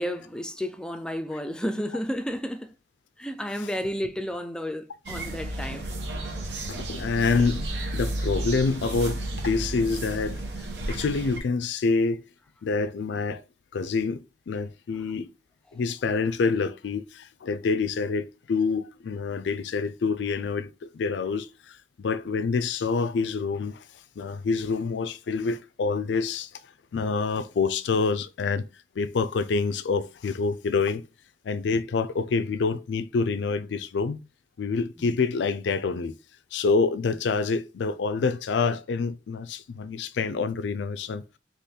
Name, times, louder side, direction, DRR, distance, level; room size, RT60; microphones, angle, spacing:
voice 1, 0.0-2.7 3.2-5.9 35.0-35.1, equal, 5° left, 0.4 m, -32 dB
sound 1, 5.1-11.4, right 1 dB, 75° right, 0.9 m, -32 dB
voice 2, 6.7-7.7 7.9-12.2 12.6-13.4 13.7-15.3 15.7-28.6 29.0-31.1 31.4-34.2 34.6-36.2 36.5-41.2, left 4 dB, 80° left, 0.4 m, -27 dB
3.7 x 3.0 x 4.2 m
head